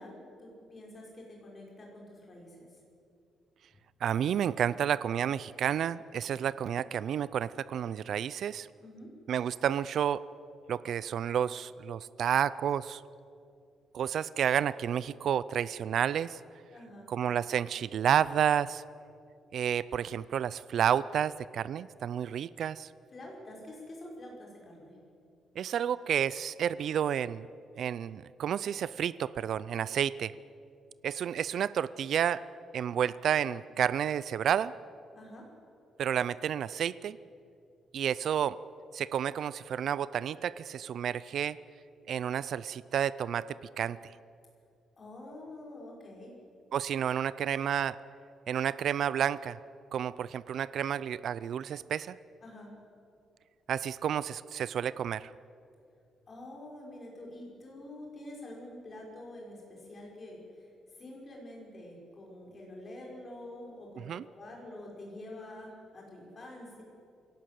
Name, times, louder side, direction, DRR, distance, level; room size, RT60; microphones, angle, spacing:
voice 1, 0.0-2.7 8.8-9.1 16.7-17.1 23.1-25.0 35.1-35.5 45.0-46.4 52.4-52.7 56.3-60.7 61.0-66.8, left 1 dB, 30° left, -1 dB, 6.0 m, -47 dB
voice 2, 4.0-8.7 9.3-10.2 10.7-13.0 13.9-16.4 17.1-18.8 19.5-22.9 25.6-27.5 27.8-30.3 31.0-32.4 32.7-34.7 36.0-37.2 37.9-38.6 38.9-41.6 42.1-43.5 43.8-44.0 46.7-48.0 48.5-49.6 49.9-52.2 53.7-55.3 64.1-64.2, right 9 dB, 60° right, 17 dB, 0.4 m, -30 dB
23.0 x 17.5 x 7.8 m, 2.5 s
cardioid pair, 145°, 0 cm